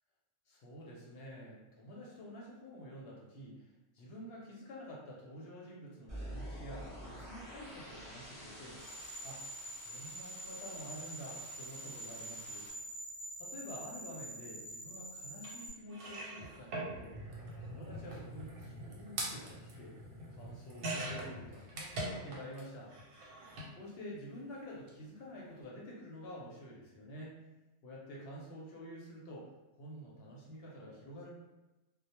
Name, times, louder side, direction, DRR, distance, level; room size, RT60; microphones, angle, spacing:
voice 1, 0.5-9.4 9.7-12.7 13.4-17.1 17.6-19.9 20.4-22.9 23.8-27.4 27.8-29.5 29.7-31.3, equal, 60° left, -4 dB, 0.7 m, -49 dB
sound 1, 6.1-12.7, equal, 25° left, 0.8 m, -49 dB
sound 2, 8.8-15.7, right 1 dB, 50° right, 0.5 m, -46 dB
sound 3, 15.4-15.5 15.9-22.6 22.9-23.7 24.7-24.9 25.2-25.3, right 1 dB, 90° right, 1.0 m, -43 dB
2.1 x 2.1 x 2.8 m, 1.0 s
omnidirectional pair, 1.3 m